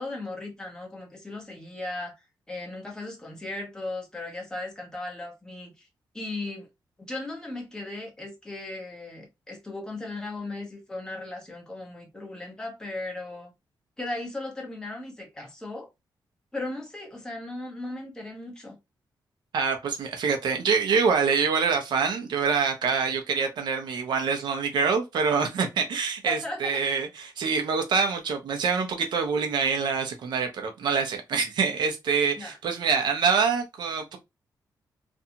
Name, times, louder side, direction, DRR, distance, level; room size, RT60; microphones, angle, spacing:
voice 1, 0.0-5.9 6.1-6.7 7.0-13.5 14.0-15.9 16.5-18.8 26.2-26.8 32.4-32.5, left 2 dB, 10° left, 0.8 m, -37 dB
voice 2, 19.5-34.2, right 5 dB, 75° right, 0.7 m, -25 dB
2.6 x 2.3 x 2.7 m
wide cardioid pair, 175°, 8 cm